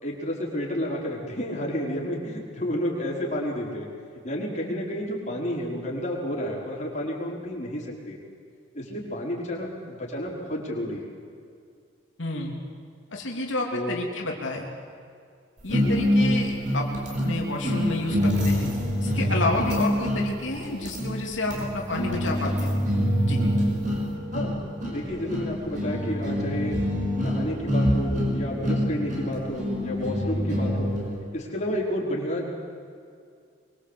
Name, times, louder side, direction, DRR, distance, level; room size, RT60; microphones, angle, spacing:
voice 1, 0.0-3.9 4.2-8.2 8.7-11.1 13.7-14.0 15.8-16.1 24.3-26.8 27.2-30.9 31.3-32.6, equal, 35° left, -3 dB, 5.3 m, -31 dB
voice 2, 12.2-12.5 13.1-14.7 15.6-16.9 17.2-18.7 19.0-22.8 23.2-23.4, left 2 dB, 75° left, 0 dB, 3.2 m, -30 dB
sound 1, 15.7-31.1, equal, 40° right, 5.6 m, -26 dB
24.5 x 23.5 x 8.4 m, 2.3 s
head